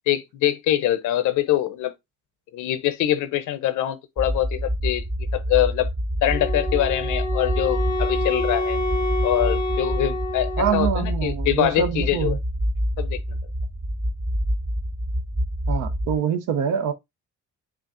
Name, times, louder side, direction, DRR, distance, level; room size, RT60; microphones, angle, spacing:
voice 1, 0.1-1.9 2.5-5.0 5.3-5.9 6.2-8.8 9.2-12.4 13.0-13.2, left 13 dB, 80° left, 0.6 m, -24 dB
sound 1, 4.2-16.2, equal, 10° right, 0.4 m, -27 dB
Wind instrument woodwind instrument, 6.3-11.1, left 1 dB, 60° right, 2.2 m, -28 dB
voice 2, 10.6-12.4 15.7-16.9, right 8 dB, 85° right, 0.7 m, -25 dB
5.7 x 2.5 x 2.5 m
cardioid pair, 90°, 30 cm